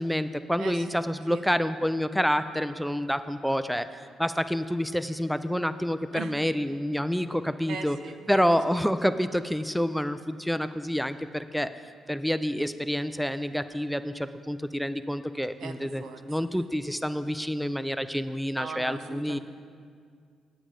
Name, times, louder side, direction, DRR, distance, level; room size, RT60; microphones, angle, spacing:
voice 1, 0.0-8.0 8.3-11.7 12.1-19.4, equal, ahead, 11 dB, 0.3 m, -28 dB
voice 2, 0.6-1.0 1.3-1.4 6.1-6.3 7.7-8.8 15.6-16.2 18.5-19.4, right 5 dB, 75° right, 7 dB, 0.7 m, -40 dB
8.7 x 8.3 x 5.1 m, 2.2 s
cardioid pair, 90°, 0 cm